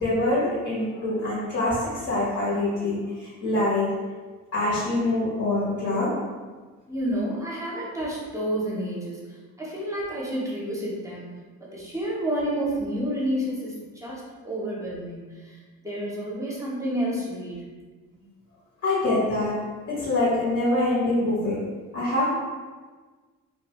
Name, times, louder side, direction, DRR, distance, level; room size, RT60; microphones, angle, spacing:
voice 1, 0.0-4.0 4.5-6.2 18.8-21.6 21.9-22.3, left 2 dB, 55° left, -9 dB, 1.0 m, -25 dB
voice 2, 6.9-11.3 11.6-15.6 15.8-17.6 18.1-18.2, right 1 dB, 10° right, -5 dB, 0.6 m, -30 dB
2.5 x 2.2 x 2.9 m, 1.4 s
cardioid pair, 90°, 30 cm